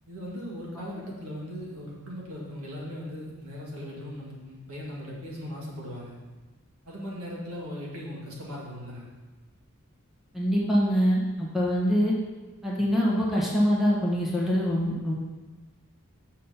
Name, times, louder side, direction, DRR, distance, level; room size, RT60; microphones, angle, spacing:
voice 1, 0.1-6.2 6.9-9.1, equal, 70° right, -4 dB, 2.2 m, -38 dB
voice 2, 10.3-12.1 12.6-15.1, equal, ahead, -5 dB, 1.4 m, -24 dB
6.5 x 6.2 x 5.7 m, 1.2 s
head